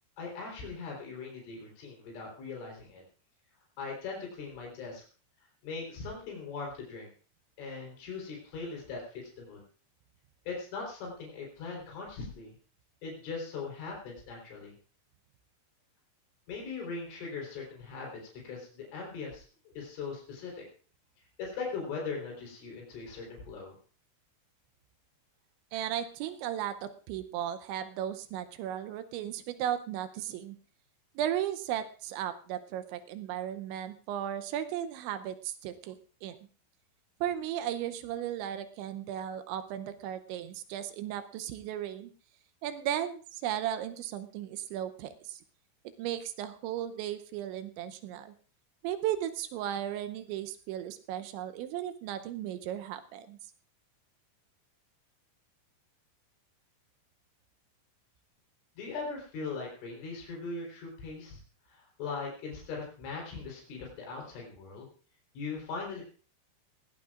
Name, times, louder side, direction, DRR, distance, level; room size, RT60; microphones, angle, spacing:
voice 1, 0.2-3.0 3.8-5.0 5.6-7.1 7.6-9.6 10.5-12.5 13.0-14.7 16.5-19.5 19.8-20.6 21.4-23.8 58.8-61.4 61.7-64.9 65.3-66.0, left 4 dB, 80° left, 0 dB, 6.3 m, -40 dB
voice 2, 25.7-30.6 31.2-36.4 37.2-42.1 42.6-45.4 46.0-48.3 48.8-53.4, right 11 dB, 80° right, 10 dB, 3.0 m, -35 dB
20.0 x 16.5 x 2.4 m, 0.39 s
omnidirectional pair, 5.4 m